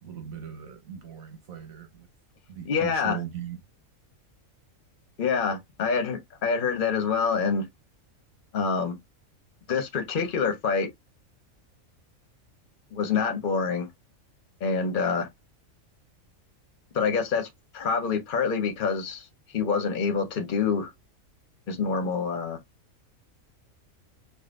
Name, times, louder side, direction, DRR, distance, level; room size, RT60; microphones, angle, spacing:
voice 1, 0.0-2.1 2.5-3.6, right 9 dB, 80° right, 1.5 m, -38 dB
voice 2, 2.7-3.2 5.2-7.7 8.5-8.9 9.7-10.9 12.9-13.9 14.6-15.3 16.9-17.5 17.7-19.3 19.5-20.9 21.7-22.6, left 5 dB, 45° left, 0.9 m, -26 dB
4.9 x 2.6 x 2.5 m
omnidirectional pair, 1.4 m